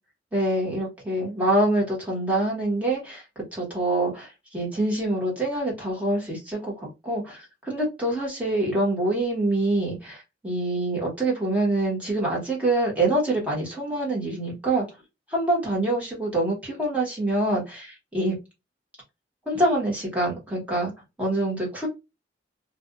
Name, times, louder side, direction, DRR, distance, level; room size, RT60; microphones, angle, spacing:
voice 1, 0.3-3.2 3.5-14.9 15.3-18.3 19.5-20.9 21.2-21.9, right 1 dB, 10° right, 1.3 m, -25 dB
2.5 x 2.4 x 2.4 m
head